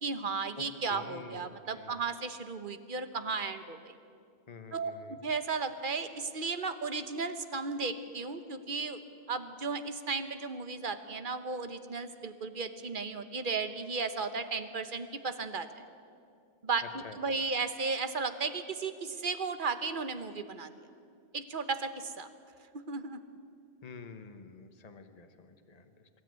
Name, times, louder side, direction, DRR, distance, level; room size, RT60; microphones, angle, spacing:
voice 1, 0.0-3.9 4.7-4.9 5.2-9.0 9.3-15.8 16.6-16.8 17.2-20.7 21.3-22.3 22.7-23.2, right 4 dB, 55° right, 10 dB, 1.2 m, -35 dB
voice 2, 0.6-2.0 4.5-5.2 17.0-17.4 23.8-26.1, left 4 dB, 40° left, 7 dB, 1.2 m, -49 dB
23.5 x 13.0 x 9.4 m, 2.4 s
omnidirectional pair, 1.1 m